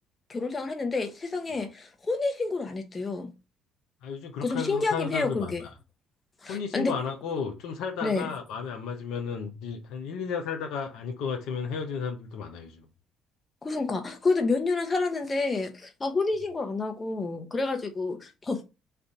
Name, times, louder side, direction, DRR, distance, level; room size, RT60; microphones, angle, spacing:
voice 1, 0.3-3.3 4.4-5.6 6.4-7.0 8.0-8.3 13.6-18.6, left 3 dB, 30° left, 1.0 m, -29 dB
voice 2, 4.0-5.5 6.5-12.8, left 6 dB, 70° left, 0.7 m, -33 dB
3.4 x 2.6 x 3.8 m
hypercardioid pair, 55°, 0 cm